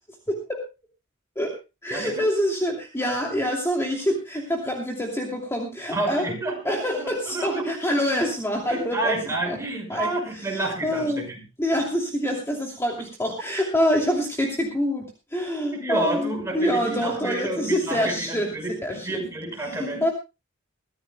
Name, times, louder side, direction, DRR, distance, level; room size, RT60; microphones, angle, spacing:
voice 1, 0.3-0.7 1.4-1.5 1.8-6.3 6.6-9.1 9.5-9.6 9.9-11.2 11.6-18.5 18.8-19.2 19.6-20.1, equal, 15° left, 0 dB, 2.7 m, -26 dB
voice 2, 1.9-2.3 5.9-7.7 8.7-11.4 15.7-20.0, right 2 dB, 15° right, 1 dB, 6.1 m, -29 dB
23.0 x 15.0 x 2.2 m, 0.28 s
head